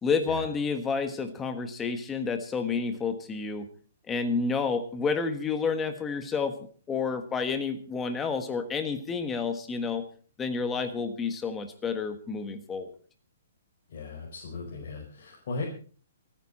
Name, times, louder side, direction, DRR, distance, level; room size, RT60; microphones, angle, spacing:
voice 1, 0.0-3.6 4.1-6.6 6.9-10.1 10.4-12.9, left 5 dB, 10° left, 8 dB, 1.4 m, -30 dB
voice 2, 13.9-15.6, left 3 dB, 50° left, -2 dB, 5.2 m, -37 dB
26.5 x 9.8 x 4.3 m, 0.41 s
hypercardioid pair, 170°, 0 cm